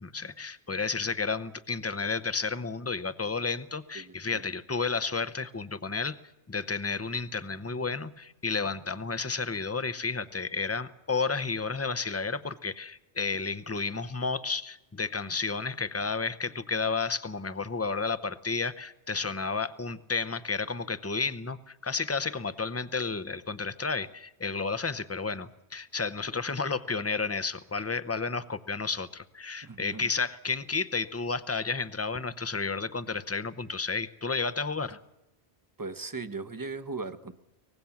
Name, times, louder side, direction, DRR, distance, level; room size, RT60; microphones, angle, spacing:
voice 1, 0.0-6.2 6.5-35.0, left 4 dB, 15° left, 13 dB, 0.7 m, -32 dB
voice 2, 3.9-4.4 29.6-30.1 35.8-37.3, right 3 dB, 20° right, 11 dB, 0.9 m, -38 dB
24.0 x 19.0 x 7.2 m, 0.90 s
omnidirectional pair, 1.1 m